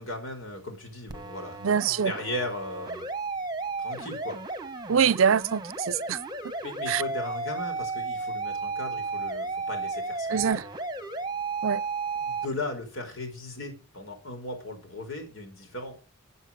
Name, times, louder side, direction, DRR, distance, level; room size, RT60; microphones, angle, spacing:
voice 1, 0.0-1.6 1.9-3.1 3.8-4.4 6.6-10.6 12.1-15.9, left 2 dB, 80° left, 4.8 m, -37 dB
sound 1, 1.1-12.5, right 3 dB, 20° right, 1.1 m, -33 dB
voice 2, 1.6-2.1 4.9-6.2 6.9-7.0 10.3-10.6 11.6-11.8, right 7 dB, 75° right, 0.5 m, -24 dB
9.0 x 8.1 x 7.5 m
head